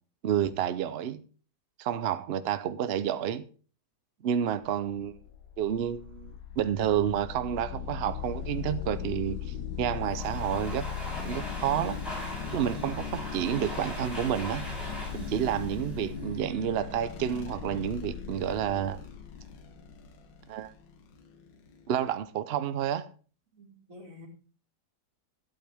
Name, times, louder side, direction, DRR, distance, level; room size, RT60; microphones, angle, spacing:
voice 1, 0.2-1.2 1.8-3.5 4.2-5.2 5.6-10.9 11.2-12.0 12.5-14.7 15.1-19.1 20.5-20.7 21.9-23.1, right 9 dB, 80° right, 0.5 m, -30 dB
sound 1, 4.9-22.2, left 7 dB, 85° left, 1.8 m, -38 dB
Domestic sounds home sounds, 9.8-16.7, left 1 dB, 20° left, 6.2 m, -41 dB
voice 2, 23.5-24.3, left 2 dB, 50° right, 2.9 m, -49 dB
13.5 x 8.7 x 3.5 m
omnidirectional pair, 1.9 m